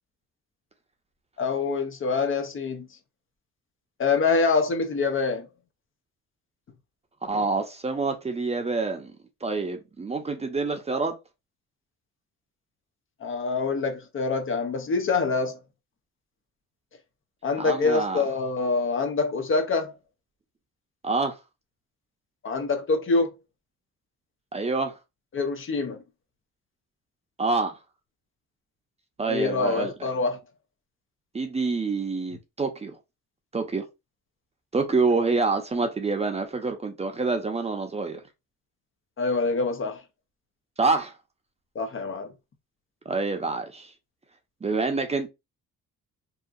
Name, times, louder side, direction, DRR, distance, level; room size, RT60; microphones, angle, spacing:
voice 1, 1.4-2.9 4.0-5.5 13.2-15.6 17.4-19.9 22.4-23.3 25.3-26.0 29.3-30.4 35.1-35.3 39.2-40.0 41.7-42.3, left 4 dB, 45° left, 0.6 m, -25 dB
voice 2, 7.2-9.1 9.4-11.1 17.6-18.2 21.0-21.4 24.5-24.9 27.4-27.8 29.2-29.9 31.3-33.0 33.5-33.9 34.7-38.2 40.8-41.1 43.1-43.9 44.6-45.3, right 3 dB, 20° right, 0.6 m, -27 dB
2.7 x 2.4 x 2.4 m
cardioid pair, 90°, 30 cm